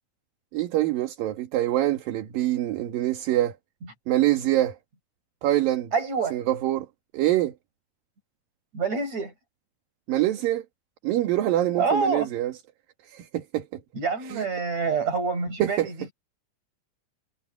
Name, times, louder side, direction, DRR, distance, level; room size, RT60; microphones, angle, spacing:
voice 1, 0.5-3.5 4.1-4.8 5.4-5.9 6.3-6.9 7.1-7.5 10.1-10.6 11.0-12.5 13.1-13.7 14.3-14.4 15.6-15.9, right 14 dB, 70° right, 3.3 m, -24 dB
voice 2, 5.9-6.4 8.7-9.3 11.8-12.3 13.9-16.1, right 4 dB, 45° right, 8.6 m, -27 dB
omnidirectional pair, 4.3 m